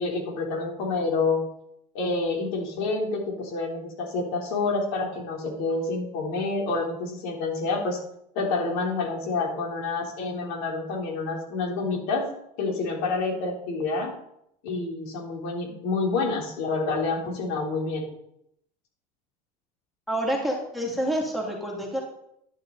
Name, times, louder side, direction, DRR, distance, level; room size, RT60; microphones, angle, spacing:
voice 1, 0.0-1.4 1.9-8.0 8.3-12.2 12.6-14.1 14.6-18.1, left 3 dB, 80° left, 0 dB, 3.7 m, -28 dB
voice 2, 20.1-22.0, equal, ahead, -2 dB, 2.8 m, -28 dB
11.0 x 10.5 x 4.1 m, 0.76 s
cardioid pair, 150°, 19 cm